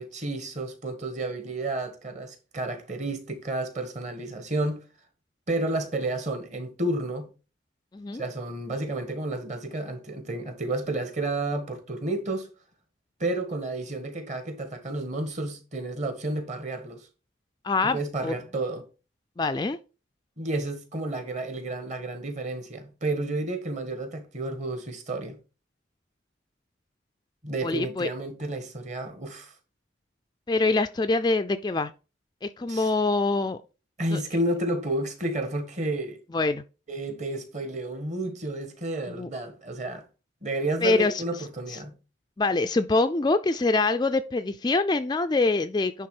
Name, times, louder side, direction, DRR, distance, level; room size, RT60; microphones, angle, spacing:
voice 1, 0.0-4.8 5.5-7.3 8.1-12.5 13.2-17.1 17.8-18.9 20.4-25.4 27.4-29.5 32.7-32.9 34.0-36.2 36.9-40.0 40.4-42.0, right 2 dB, 35° right, 1.4 m, -31 dB
voice 2, 17.6-18.3 19.4-19.8 27.6-28.1 30.5-31.9 32.4-33.6 34.1-34.2 36.3-36.6 39.1-39.3 40.8-41.2 41.7-41.8 42.4-46.1, left 3 dB, 20° left, 0.3 m, -25 dB
10.5 x 3.5 x 4.8 m
head